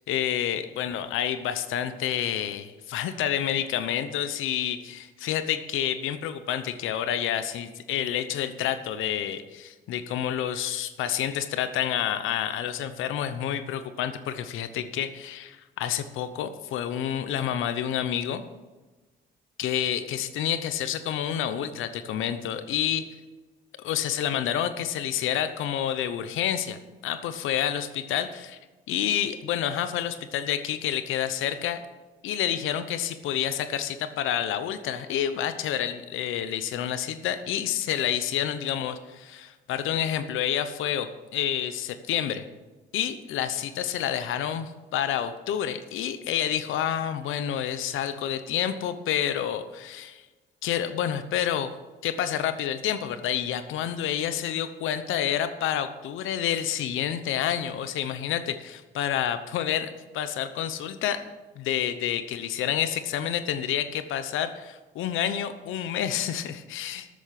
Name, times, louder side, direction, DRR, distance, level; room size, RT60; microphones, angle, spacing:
voice 1, 0.0-18.4 19.6-23.1 23.8-28.6 28.9-31.8 32.2-42.4 42.9-50.2 50.6-51.7 52.0-61.2 61.6-67.1, left 10 dB, 85° left, 11 dB, 0.9 m, -29 dB
12.5 x 8.4 x 5.9 m, 1.2 s
cardioid pair, 90°, 20 cm